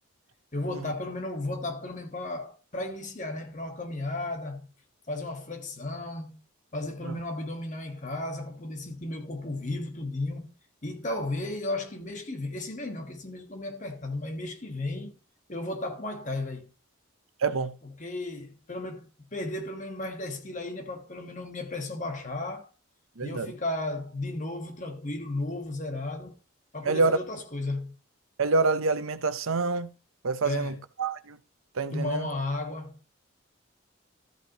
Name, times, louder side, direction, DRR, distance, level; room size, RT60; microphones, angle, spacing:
voice 1, 0.5-4.6 5.1-6.4 6.7-10.5 10.8-15.2 15.5-16.7 17.8-22.7 23.2-26.3 26.7-27.9 30.4-30.8 31.9-33.0, left 2 dB, 35° left, 1.4 m, -34 dB
voice 2, 17.4-17.7 23.2-23.5 26.9-27.2 28.4-29.9 30.2-30.7 31.0-31.4 31.8-32.3, right 3 dB, 85° right, 0.7 m, -26 dB
13.5 x 8.4 x 2.9 m
head